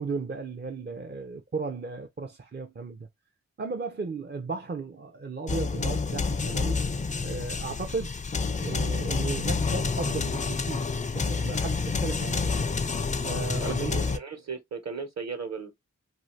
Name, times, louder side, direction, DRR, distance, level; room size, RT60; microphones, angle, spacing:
voice 1, 0.0-3.1 3.6-6.8 7.2-8.2 8.6-10.9 11.1-12.5 13.2-14.2, right 4 dB, 30° right, 0.5 m, -35 dB
sound 1, 5.5-14.2, left 4 dB, 25° left, 0.4 m, -28 dB
voice 2, 13.6-15.7, right 5 dB, 55° right, 1.2 m, -36 dB
2.6 x 2.4 x 3.2 m
cardioid pair, 40°, 33 cm